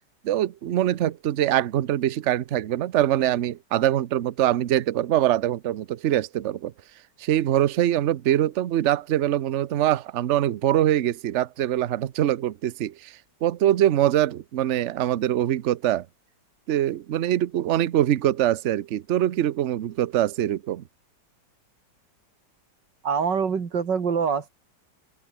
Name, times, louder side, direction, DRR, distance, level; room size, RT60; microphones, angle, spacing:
voice 1, 0.2-6.7 7.2-13.1 13.4-16.1 16.7-20.8, right 12 dB, 55° right, 0.9 m, -23 dB
voice 2, 23.0-24.5, right 6 dB, 90° right, 2.8 m, -24 dB
open air
omnidirectional pair, 1.9 m